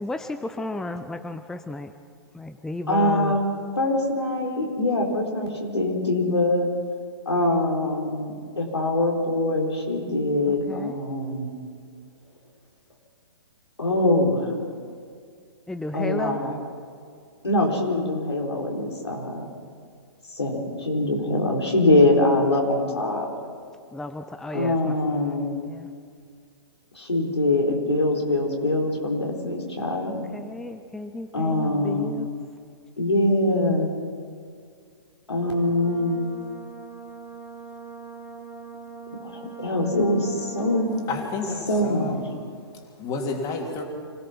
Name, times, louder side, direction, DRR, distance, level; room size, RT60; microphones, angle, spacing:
voice 1, 0.0-1.9 2.3-3.4 10.5-11.0 15.7-16.4 19.1-19.2 23.9-25.4 25.7-25.9 30.3-32.3, left 2 dB, 5° left, 8 dB, 0.6 m, -34 dB
voice 2, 2.9-3.4 3.8-6.7 7.3-11.5 13.8-14.6 15.9-16.5 17.4-19.5 20.3-23.3 24.5-25.6 27.0-30.2 31.3-32.1 33.0-33.9 35.3-36.2 39.2-39.3 39.6-41.0 41.7-42.2, left 1 dB, 85° left, -1 dB, 4.3 m, -23 dB
Brass instrument, 35.4-41.2, right 5 dB, 35° right, 3.2 m, -41 dB
voice 3, 41.1-42.2 43.0-43.8, left 4 dB, 25° left, 1 dB, 3.2 m, -30 dB
26.0 x 17.0 x 6.0 m, 2.1 s
figure-of-eight pair, 120°, 14 cm